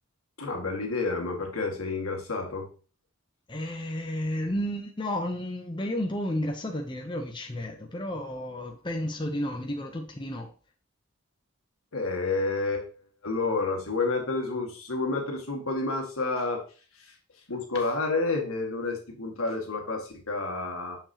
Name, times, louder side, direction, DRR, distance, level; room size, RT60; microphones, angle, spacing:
voice 1, 0.4-2.7 11.9-12.9 13.2-16.6 16.9-21.0, left 3 dB, 75° left, 1.8 m, -30 dB
voice 2, 3.5-10.5, left 1 dB, 20° left, 0.6 m, -32 dB
6.8 x 5.9 x 2.8 m
head